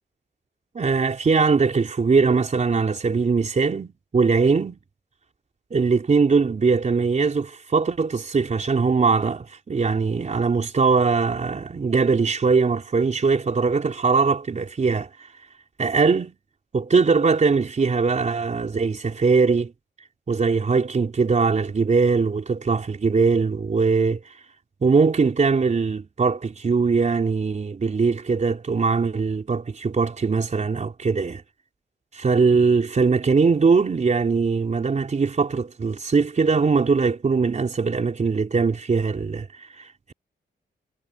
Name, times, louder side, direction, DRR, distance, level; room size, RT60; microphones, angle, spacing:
voice 1, 0.7-4.8 5.7-15.1 15.8-16.4 16.7-19.7 20.3-24.2 24.8-31.4 32.1-40.1, right 4 dB, 40° right, 4.2 m, -21 dB
wide cardioid pair, 145°, 19 cm